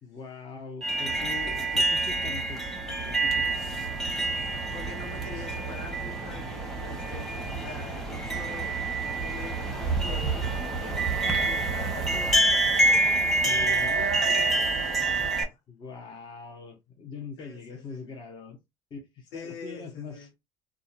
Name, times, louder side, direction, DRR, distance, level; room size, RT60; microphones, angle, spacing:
voice 1, 0.0-2.6 3.0-3.5 13.4-14.1 15.7-18.6 18.9-20.3, left 4 dB, 35° left, 1.0 m, -42 dB
sound 1, 0.8-15.4, right 2 dB, ahead, 1.2 m, -27 dB
voice 2, 4.4-15.6 17.4-18.0 19.3-20.3, left 4 dB, 70° left, 1.3 m, -44 dB
2.7 x 2.4 x 2.6 m
supercardioid pair, 90°, 14 cm